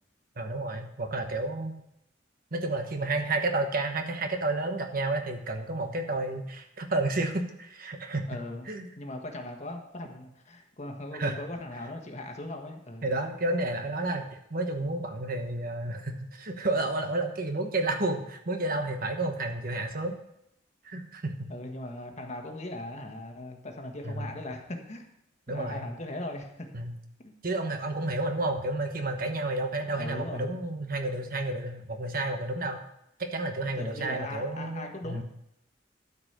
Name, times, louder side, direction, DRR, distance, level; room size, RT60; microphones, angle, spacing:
voice 1, 0.4-1.7 2.5-8.3 8.7-8.9 11.2-11.3 13.0-14.2 14.5-20.1 20.8-21.5 24.0-24.3 25.5-25.8 26.7-26.9 27.4-32.8 33.2-35.2, right 2 dB, 50° right, 5 dB, 1.2 m, -31 dB
voice 2, 8.3-8.7 9.0-13.1 21.5-25.1 25.5-26.7 27.2-27.3 30.0-30.6 33.6-35.2, left 1 dB, 40° left, 3 dB, 1.4 m, -39 dB
12.5 x 5.2 x 6.7 m, 0.78 s
head